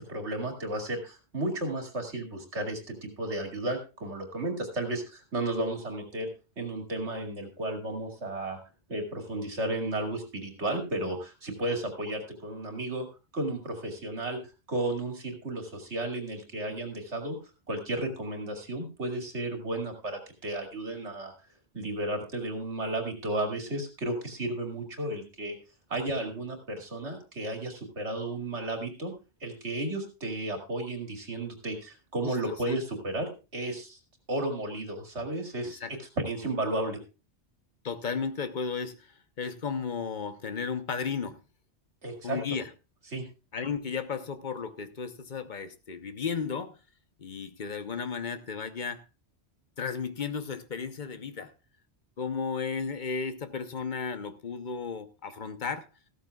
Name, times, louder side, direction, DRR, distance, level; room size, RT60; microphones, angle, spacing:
voice 1, 0.0-6.3 6.6-8.6 8.9-13.1 13.3-14.4 14.7-17.4 17.7-21.3 21.7-25.6 25.9-29.1 29.4-34.0 34.3-35.8 36.2-37.0 42.0-42.4 43.1-43.2, right 1 dB, 85° right, 2.7 m, -33 dB
voice 2, 32.2-32.8 35.6-35.9 37.8-41.4 42.2-42.7 43.5-46.8 47.2-49.0 49.8-51.5 52.2-55.9, left 5 dB, 45° left, 1.0 m, -34 dB
15.0 x 13.5 x 2.3 m
omnidirectional pair, 1.1 m